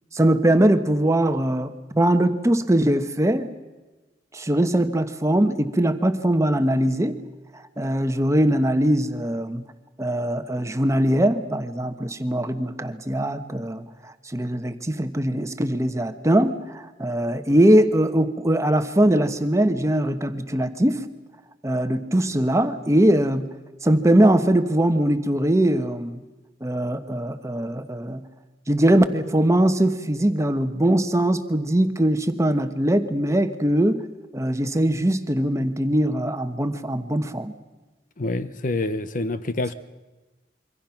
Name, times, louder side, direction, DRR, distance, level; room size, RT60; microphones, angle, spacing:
voice 1, 0.1-3.5 4.3-7.2 7.5-9.7 10.0-21.0 21.6-23.5 23.8-26.2 26.6-28.2 28.7-34.0 34.3-37.5, right 1 dB, 15° right, 8 dB, 1.1 m, -21 dB
voice 2, 38.2-39.7, left 2 dB, 50° left, 13 dB, 0.9 m, -27 dB
26.5 x 24.0 x 5.9 m, 1.2 s
head